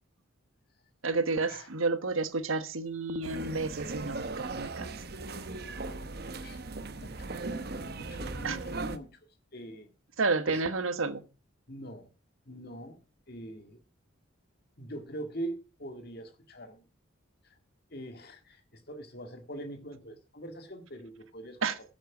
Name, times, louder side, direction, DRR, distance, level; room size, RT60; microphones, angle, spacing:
voice 1, 1.0-4.9 8.4-8.6 10.2-11.2 21.6-21.8, right 3 dB, 75° right, 1.2 m, -30 dB
sound 1, 3.2-9.0, right 3 dB, 50° right, 1.0 m, -38 dB
voice 2, 7.0-7.3 7.8-9.1 9.5-9.9 10.5-10.6 11.7-12.1 12.5-13.0 13.3-13.8 14.8-16.8 17.4-17.5 17.9-18.6 18.9-21.6, right 1 dB, 50° left, 2.0 m, -43 dB
11.5 x 7.8 x 6.1 m
head